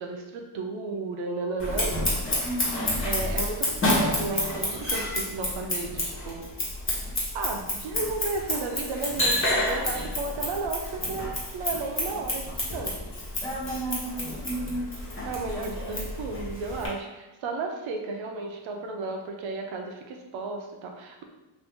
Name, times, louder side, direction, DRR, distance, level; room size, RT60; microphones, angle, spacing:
voice 1, 0.0-2.0 3.0-6.4 6.9-7.1 7.3-13.0 15.3-21.2, right 3 dB, 85° right, 2 dB, 0.6 m, -33 dB
Scissors, 1.6-16.9, left 1 dB, 25° left, 1.2 m, -29 dB
voice 2, 2.4-3.0 13.4-14.9, right 1 dB, 10° left, -4 dB, 0.7 m, -33 dB
2.7 x 2.6 x 3.5 m, 1.0 s
cardioid pair, 95°, 46 cm